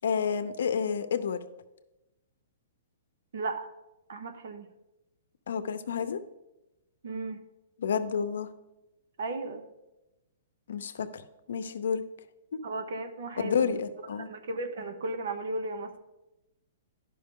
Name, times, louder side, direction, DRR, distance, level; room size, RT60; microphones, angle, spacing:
voice 1, 0.0-1.4 5.5-6.2 7.8-8.5 10.7-11.2 11.5-12.0 13.4-14.3, left 6 dB, 75° left, 10 dB, 0.7 m, -29 dB
voice 2, 3.3-3.7 4.1-4.7 7.0-7.4 9.2-9.7 12.6-13.8 14.2-16.0, right 2 dB, 65° right, 8 dB, 0.8 m, -35 dB
12.0 x 5.4 x 3.7 m, 0.98 s
hypercardioid pair, 175°, 0 cm